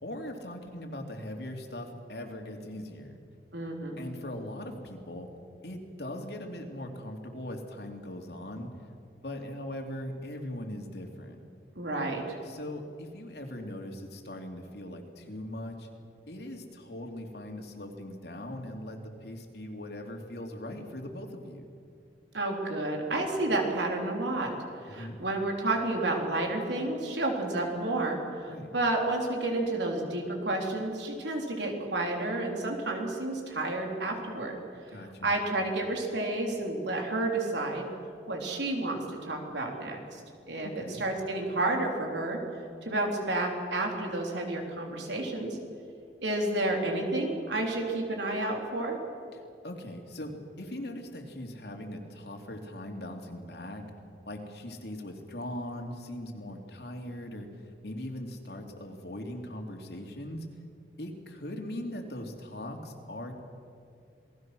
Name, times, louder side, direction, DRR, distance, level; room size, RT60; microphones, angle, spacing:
voice 1, 0.0-3.2 4.0-5.3 5.6-8.7 9.2-11.4 12.4-15.9 16.3-21.7 24.9-25.2 28.5-28.7 34.9-35.4 40.6-41.0 49.3-53.8 54.3-60.5 61.0-63.4, left 1 dB, 70° left, 3 dB, 2.9 m, -40 dB
voice 2, 3.5-4.0 11.8-12.4 22.3-24.5 24.8-34.6 35.2-37.8 38.3-40.2 40.5-42.4 42.8-45.6 46.2-49.0, right 2 dB, 90° right, 1 dB, 4.0 m, -30 dB
28.0 x 19.5 x 6.2 m, 2.4 s
head